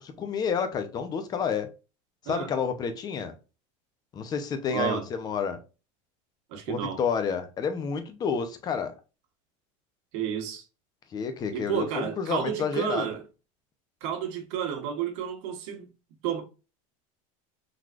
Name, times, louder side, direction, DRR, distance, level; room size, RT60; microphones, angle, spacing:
voice 1, 0.0-1.7 2.2-3.4 4.1-5.6 6.7-8.9 11.1-13.1, left 6 dB, 25° left, 0.6 m, -30 dB
voice 2, 4.7-5.0 6.5-7.0 10.1-10.6 11.5-13.2 14.0-15.9 16.2-16.4, right 8 dB, 70° right, 1.4 m, -31 dB
3.9 x 3.1 x 2.4 m
supercardioid pair, 155°, 16 cm